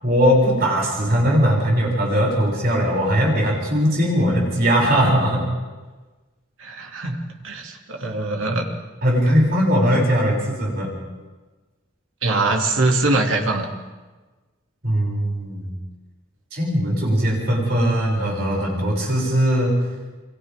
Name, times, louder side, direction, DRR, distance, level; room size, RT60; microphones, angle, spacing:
voice 1, 0.0-5.5 9.0-10.9 14.8-15.7 16.5-19.8, equal, 50° right, -2 dB, 7.1 m, -19 dB
voice 2, 6.6-8.7 12.2-13.7, right 2 dB, 90° right, 1 dB, 2.6 m, -22 dB
28.5 x 24.0 x 3.7 m, 1.3 s
head